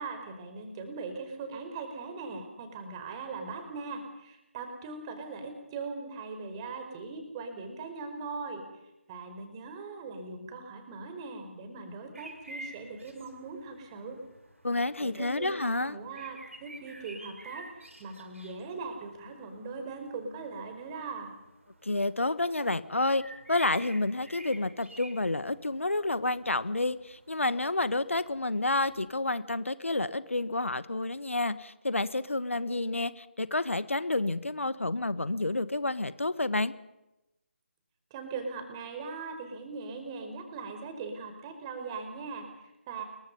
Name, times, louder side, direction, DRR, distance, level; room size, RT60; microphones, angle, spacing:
voice 1, 0.0-8.6 9.1-14.2 15.0-21.3 38.1-43.0, right 4 dB, 25° right, 6 dB, 4.9 m, -40 dB
sound 1, 12.1-29.1, right 1 dB, 80° right, 7.1 m, -51 dB
voice 2, 14.6-16.0 21.8-23.2 23.5-36.7, left 2 dB, 75° left, 14 dB, 1.6 m, -29 dB
29.0 x 23.5 x 5.5 m, 0.91 s
figure-of-eight pair, 150°, 7 cm